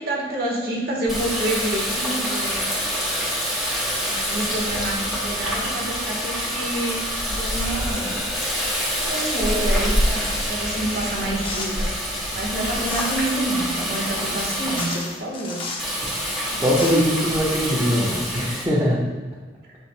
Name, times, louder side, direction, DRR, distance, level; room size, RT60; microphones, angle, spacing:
voice 1, 0.0-2.7 3.9-8.2 8.9-12.0 12.3-15.6 16.5-16.6, right 1 dB, 60° right, -2 dB, 1.5 m, -28 dB
Water tap faucet, 1.1-14.8 15.8-18.7, equal, ahead, 2.1 m, -26 dB
sound 1, 11.4-11.9 12.9-13.3 14.3-14.4 14.8-15.9 16.5-16.9, left 3 dB, 30° left, 0.9 m, -32 dB
voice 2, 16.6-19.0, equal, 20° right, -9 dB, 1.1 m, -21 dB
8.5 x 6.4 x 2.3 m, 1.4 s
head